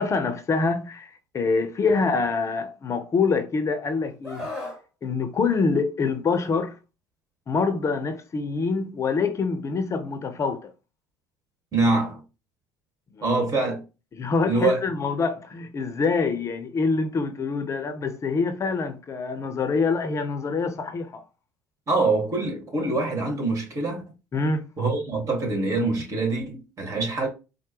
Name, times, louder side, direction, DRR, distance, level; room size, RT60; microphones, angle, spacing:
voice 1, 0.0-4.4 5.0-6.8 7.5-10.7 13.1-13.4 14.1-21.2 24.3-24.7, left 4 dB, 35° left, 0.7 m, -25 dB
Screaming, 4.2-4.8 6.3-6.5, left 2 dB, 5° right, 1.6 m, -35 dB
voice 2, 11.7-12.2 13.2-13.8 14.5-14.8 21.9-24.0 24.8-27.3, right 3 dB, 40° right, 1.8 m, -24 dB
4.3 x 2.2 x 3.0 m
figure-of-eight pair, 60°, 9 cm